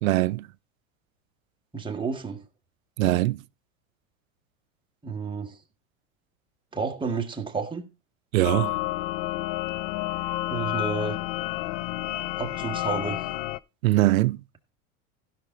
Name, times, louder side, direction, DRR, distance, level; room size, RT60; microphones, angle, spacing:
voice 1, 0.0-0.5 3.0-3.4 8.3-8.8 13.8-14.4, right 17 dB, 80° right, 0.6 m, -22 dB
voice 2, 1.7-2.4 5.0-5.6 6.7-7.9 10.5-11.2 12.4-13.3, right 5 dB, 10° right, 1.6 m, -31 dB
sound 1, 8.4-13.6, left 17 dB, 55° left, 0.5 m, -30 dB
15.5 x 5.9 x 4.0 m
hypercardioid pair, 100°, 40 cm